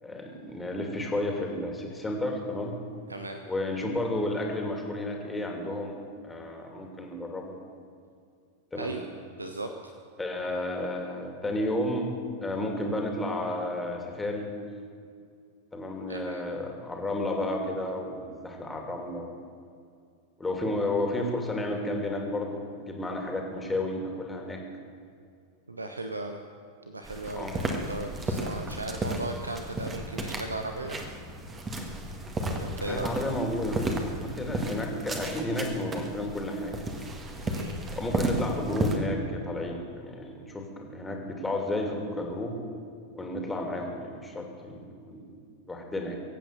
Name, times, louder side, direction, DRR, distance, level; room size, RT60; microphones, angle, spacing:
voice 1, 0.0-2.7 3.4-7.6 8.7-8.9 10.2-12.1 12.4-14.5 15.7-19.3 20.4-24.6 27.3-27.5 32.8-36.9 37.9-42.6 43.1-45.3 45.7-46.2, left 1 dB, 10° left, 1 dB, 2.6 m, -32 dB
voice 2, 3.1-3.4 8.8-9.0 9.4-9.9 16.1-16.5 25.7-26.4 26.9-31.0 32.5-33.1 37.5-37.8, right 2 dB, 80° right, 6 dB, 0.8 m, -37 dB
sound 1, 27.0-39.0, right 1 dB, 20° right, 1.8 m, -33 dB
23.0 x 8.6 x 6.8 m, 2.3 s
figure-of-eight pair, 90°, 0 cm